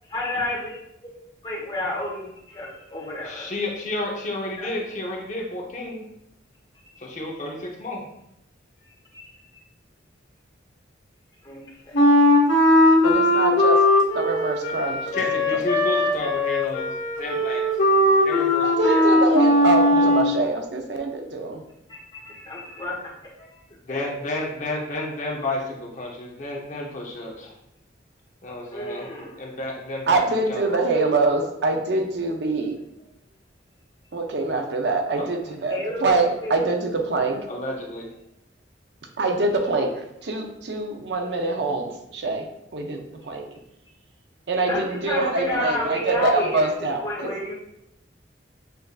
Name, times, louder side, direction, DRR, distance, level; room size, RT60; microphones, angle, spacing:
voice 1, 0.1-0.8 1.4-3.5 4.6-4.7 9.1-9.2 11.4-12.4 21.9-22.9 23.4-23.5 23.9-24.1 28.7-29.3 35.7-36.1 36.4-36.5 44.7-46.7 47.0-47.5, left 1 dB, 25° left, -5 dB, 1.2 m, -30 dB
voice 2, 3.2-6.1 7.0-8.0 15.1-16.9 17.2-17.6 18.2-19.2 23.9-27.5 28.4-29.1 29.4-31.1 35.2-35.3 37.5-38.1, left 1 dB, 40° left, -1 dB, 0.7 m, -31 dB
Wind instrument woodwind instrument, 11.9-20.4, left 1 dB, 85° left, 1.0 m, -19 dB
voice 3, 13.0-13.8 14.1-15.2 18.6-21.6 30.1-32.8 34.1-37.4 39.2-43.4 44.5-47.3, right 2 dB, 65° right, 4 dB, 0.5 m, -24 dB
6.7 x 2.6 x 2.3 m, 0.80 s
head